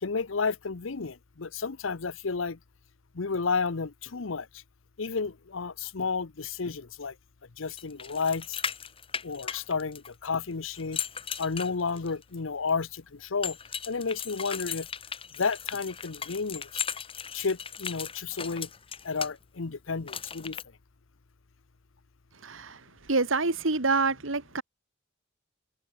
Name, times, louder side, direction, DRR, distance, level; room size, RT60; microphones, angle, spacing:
voice 1, 0.0-2.6 3.1-4.6 5.0-7.1 7.6-8.6 9.2-11.0 11.4-13.6 13.9-14.9 15.4-16.7 17.3-18.7 19.0-20.6, left 4 dB, 85° left, 0.8 m, -31 dB
sound 1, 7.8-10.3 10.7-12.2 13.4-19.3 20.1-20.6, left 7 dB, 30° left, 1.2 m, -37 dB
voice 2, 22.4-22.8 23.1-24.6, right 3 dB, 85° right, 2.1 m, -26 dB
head